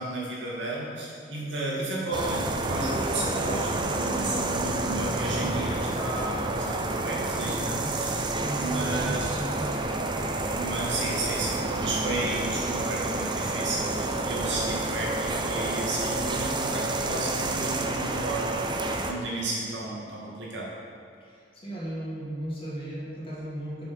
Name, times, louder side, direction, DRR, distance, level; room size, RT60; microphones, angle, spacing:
voice 1, 0.0-9.4 10.5-20.7, right 2 dB, 70° right, -4 dB, 2.3 m, -33 dB
sound 1, 2.1-19.1, right 2 dB, 25° right, 0.7 m, -29 dB
voice 2, 8.4-9.8 21.2-23.9, right 1 dB, 30° left, -6 dB, 2.5 m, -35 dB
7.5 x 7.0 x 6.5 m, 2.5 s
head